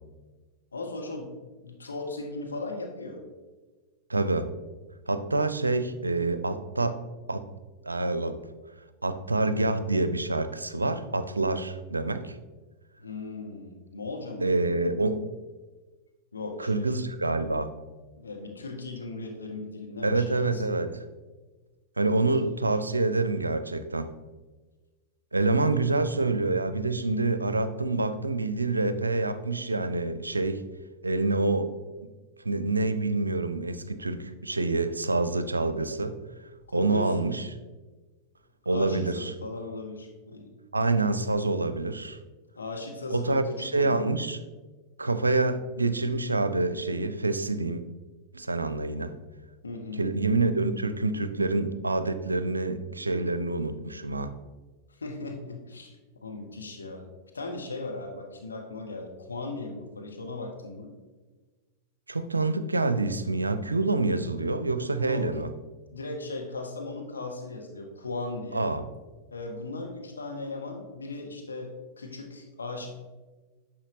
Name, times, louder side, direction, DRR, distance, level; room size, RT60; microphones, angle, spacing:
voice 1, 0.7-1.3 1.6-3.2 13.0-14.6 16.3-17.0 18.2-20.6 22.2-22.6 36.7-37.1 38.7-40.6 42.5-44.1 49.6-50.0 55.0-55.9 56.2-57.1 57.3-60.9 65.0-65.2 65.9-68.7 69.3-72.9, left 2 dB, 75° left, 2 dB, 1.2 m, -37 dB
voice 2, 4.1-4.5 5.1-7.0 7.3-7.5 7.8-8.4 9.0-12.4 14.4-15.3 16.6-17.7 20.0-21.0 22.0-24.1 25.3-30.6 31.0-31.7 32.0-32.1 32.4-36.2 36.7-37.4 38.7-39.3 40.7-42.2 43.1-44.4 45.0-47.8 48.3-49.1 49.9-54.3 62.1-65.5 68.5-68.8, right 2 dB, 80° right, 11 dB, 0.5 m, -27 dB
9.8 x 6.2 x 3.0 m, 1.3 s
figure-of-eight pair, 90°, 0 cm